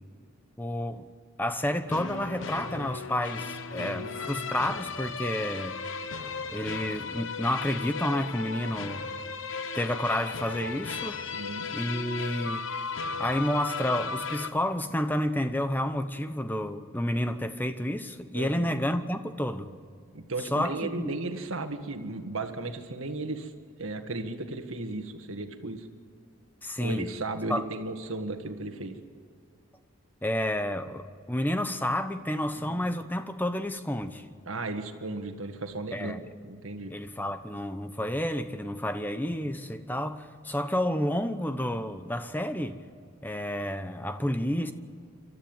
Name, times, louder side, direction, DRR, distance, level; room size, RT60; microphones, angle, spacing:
voice 1, 0.6-1.1 1.4-5.8 6.5-9.1 9.7-11.2 11.7-12.7 13.2-19.7 20.4-21.1 26.6-27.1 27.5-27.6 30.2-34.3 35.9-36.2 36.9-42.8 43.2-44.7, left 1 dB, 10° left, 0.9 m, -30 dB
sound 1, 1.9-14.5, left 5 dB, 65° left, 1.0 m, -36 dB
voice 2, 3.8-4.3 11.3-11.7 18.3-18.7 20.1-23.5 23.8-25.9 26.8-29.0 32.5-32.8 34.5-36.9, right 2 dB, 75° right, 1.7 m, -35 dB
27.0 x 13.0 x 9.0 m
head